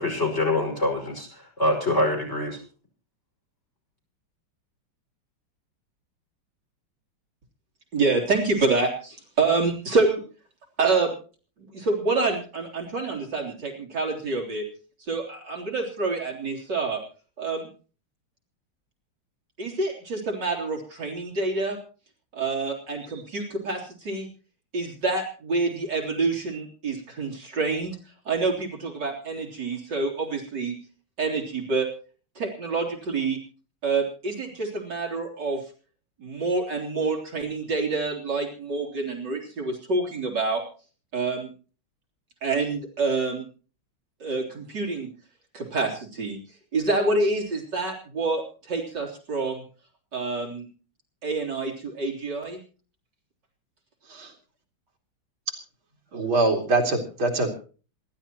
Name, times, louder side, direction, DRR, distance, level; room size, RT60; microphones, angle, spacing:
voice 1, 0.0-2.6, left 1 dB, 30° left, 1 dB, 6.0 m, -25 dB
voice 2, 7.9-10.2 10.8-11.1 11.6-14.6 15.0-17.0 17.4-17.7 19.6-21.8 22.3-24.3 24.7-28.0 28.3-30.8 31.2-31.9 32.4-33.4 33.8-35.6 36.2-40.6 41.1-41.5 42.4-43.5 44.2-45.1 45.5-46.4 46.7-49.6 50.1-50.7 51.2-52.6, right 3 dB, 55° right, 0 dB, 4.0 m, -27 dB
voice 3, 56.1-57.5, right 2 dB, 70° right, 2 dB, 3.5 m, -23 dB
27.0 x 12.0 x 3.0 m, 0.37 s
omnidirectional pair, 2.4 m